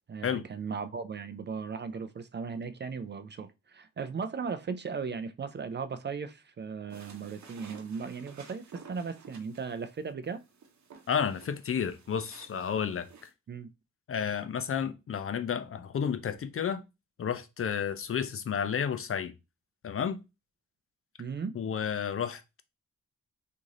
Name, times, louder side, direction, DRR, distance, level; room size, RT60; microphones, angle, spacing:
voice 1, 0.1-10.4 13.5-13.7 21.2-21.6, right 5 dB, 35° right, 0.4 m, -37 dB
sound 1, 6.9-13.3, right 5 dB, 65° right, 0.8 m, -54 dB
voice 2, 11.1-13.1 14.1-16.8 17.2-19.3 19.8-20.2 21.5-22.6, left 7 dB, 45° left, 0.5 m, -31 dB
3.0 x 2.6 x 3.7 m
cardioid pair, 65°, 30 cm